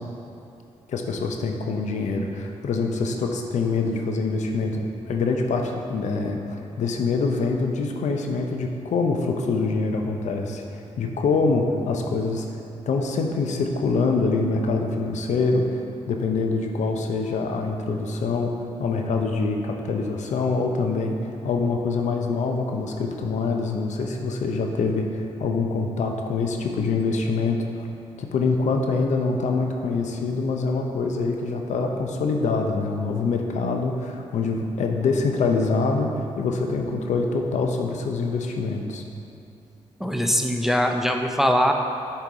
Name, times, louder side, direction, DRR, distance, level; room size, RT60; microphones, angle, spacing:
voice 1, 0.9-12.6 12.9-27.9 28.2-39.0, left 4 dB, 75° left, 3 dB, 0.6 m, -25 dB
voice 2, 40.0-41.7, equal, 5° right, 3 dB, 0.5 m, -21 dB
6.9 x 4.6 x 3.8 m, 2.7 s
cardioid pair, 75°, 12 cm